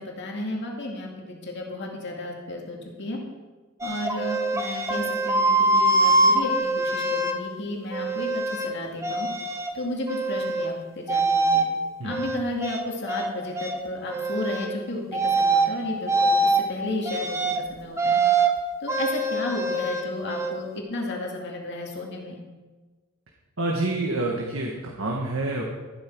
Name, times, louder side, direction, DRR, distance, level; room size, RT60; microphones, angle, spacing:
voice 1, 0.0-3.2 3.8-9.3 9.7-11.6 12.0-18.2 18.8-22.4, left 1 dB, 55° left, 0 dB, 2.3 m, -33 dB
sound 1, 3.8-7.4 7.9-8.7 9.0-9.7 10.1-10.7 11.1-11.7 12.1-13.3 13.6-13.8 14.1-14.7 15.1-15.7 16.1-16.6 17.1-17.6 18.0-18.5 18.9-20.5, right 2 dB, 15° right, 1.0 m, -23 dB
voice 2, 23.6-25.6, right 2 dB, 80° right, 0 dB, 1.6 m, -27 dB
13.5 x 11.5 x 4.7 m, 1.3 s
head